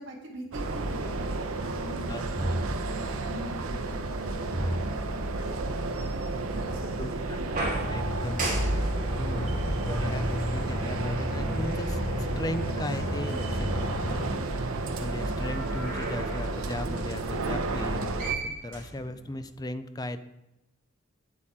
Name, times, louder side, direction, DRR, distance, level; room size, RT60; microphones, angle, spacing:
voice 1, 0.0-2.3 2.8-5.6 6.5-7.5, right 1 dB, 60° right, -3 dB, 1.8 m, -43 dB
sound 1, 0.5-18.4, right 2 dB, 85° right, 0.8 m, -32 dB
sound 2, 2.3-3.4 4.5-5.7 7.4-11.0 11.9-12.0 15.2-16.5 17.9-18.0 18.2-19.4, right 1 dB, 40° right, 2.9 m, -34 dB
voice 2, 7.0-7.4 7.9-8.9 9.2-12.0 12.4-20.2, left 1 dB, 20° left, 11 dB, 0.4 m, -37 dB
Aircraft, 7.8-14.3, left 1 dB, 50° left, 1.1 m, -33 dB
8.4 x 8.2 x 3.7 m, 0.93 s
head